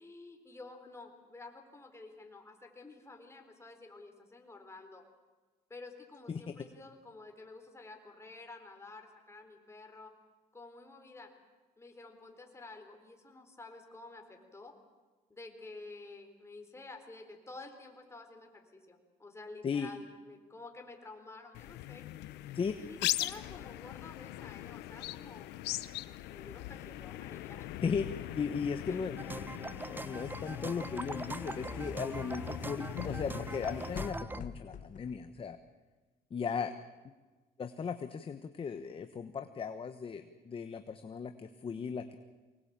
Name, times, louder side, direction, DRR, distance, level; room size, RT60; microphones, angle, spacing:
voice 1, 0.0-5.0 5.7-10.1 10.5-11.3 11.8-14.7 15.3-22.1 22.4-25.5 26.1-27.7 28.6-29.0 36.6-36.8, left 3 dB, 15° left, 4 dB, 4.2 m, -51 dB
sound 1, 21.5-34.1, left 16 dB, 85° left, 0.9 m, -41 dB
voice 2, 28.4-29.2 29.9-35.6 36.3-36.7 37.6-42.2, left 6 dB, 30° left, 9 dB, 1.2 m, -37 dB
sound 2, 29.2-34.4, right 2 dB, 10° right, 0.8 m, -42 dB
sound 3, 29.8-35.6, left 8 dB, 50° left, 1.6 m, -48 dB
24.0 x 19.5 x 8.8 m, 1.3 s
cardioid pair, 110°, 17 cm